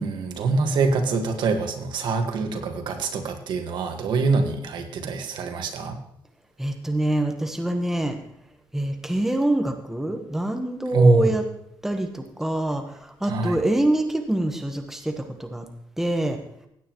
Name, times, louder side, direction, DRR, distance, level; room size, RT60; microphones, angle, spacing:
voice 1, 0.0-6.0 10.9-11.3 13.3-13.6, right 3 dB, 70° right, 5 dB, 1.6 m, -24 dB
voice 2, 6.6-8.2 8.7-11.4 11.8-15.7 16.0-16.4, right 1 dB, 5° right, 5 dB, 1.1 m, -25 dB
16.5 x 9.2 x 3.1 m, 0.75 s
cardioid pair, 125°, 8 cm